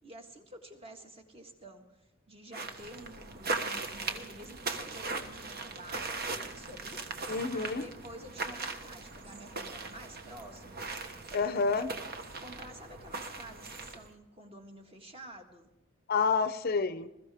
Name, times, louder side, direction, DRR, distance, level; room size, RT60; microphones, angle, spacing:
voice 1, 0.0-11.5 12.3-15.7, right 1 dB, 30° right, 3 dB, 1.7 m, -50 dB
sound 1, 2.5-14.1, right 3 dB, 50° right, 1.2 m, -39 dB
voice 2, 7.3-7.9 11.3-11.9 16.1-17.1, left 5 dB, 45° left, 12 dB, 0.6 m, -29 dB
21.0 x 14.0 x 3.5 m, 0.98 s
head